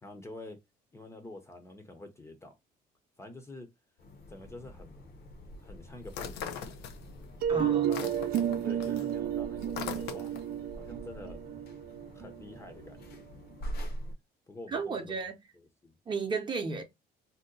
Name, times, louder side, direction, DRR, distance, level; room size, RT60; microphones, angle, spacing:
voice 1, 0.0-0.6 0.9-2.5 3.2-3.7 4.3-5.0 5.6-6.8 7.5-8.1 8.6-10.4 10.7-11.4 12.1-13.3 14.5-15.2 15.8-15.9, left 2 dB, 15° left, 0.6 m, -46 dB
sound 1, 4.0-14.1, equal, 65° left, 0.9 m, -45 dB
sound 2, 6.1-7.3 7.6-10.6, left 8 dB, 85° left, 0.5 m, -41 dB
sound 3, 7.4-13.2, right 10 dB, 65° right, 0.4 m, -32 dB
voice 2, 7.5-7.9 14.7-15.3 16.1-16.8, right 4 dB, 30° right, 0.7 m, -33 dB
2.8 x 2.1 x 3.7 m
cardioid pair, 110°, 17 cm